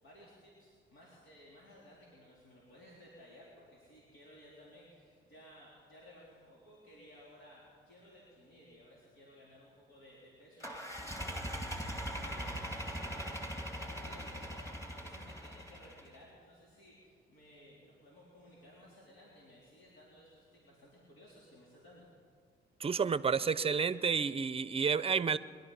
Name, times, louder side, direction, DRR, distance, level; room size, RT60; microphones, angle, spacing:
voice 1, 0.0-22.1, equal, 75° left, -6 dB, 3.8 m, -58 dB
sound 1, 10.6-16.1, equal, 15° left, 2.5 m, -41 dB
voice 2, 22.8-25.4, right 6 dB, 30° right, 15 dB, 0.6 m, -30 dB
22.0 x 12.0 x 5.5 m, 2.1 s
cardioid pair, 90°, 20 cm